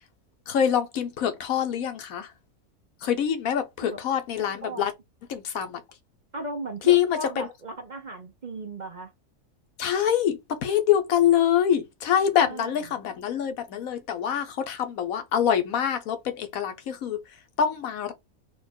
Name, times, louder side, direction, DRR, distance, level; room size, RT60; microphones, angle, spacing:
voice 1, 0.5-2.3 3.0-4.9 5.3-5.8 6.8-7.5 9.8-18.1, left 9 dB, 85° left, 1.3 m, -25 dB
voice 2, 6.3-9.1 12.3-12.7, right 2 dB, 40° right, 0.9 m, -36 dB
4.3 x 2.5 x 4.4 m
omnidirectional pair, 1.4 m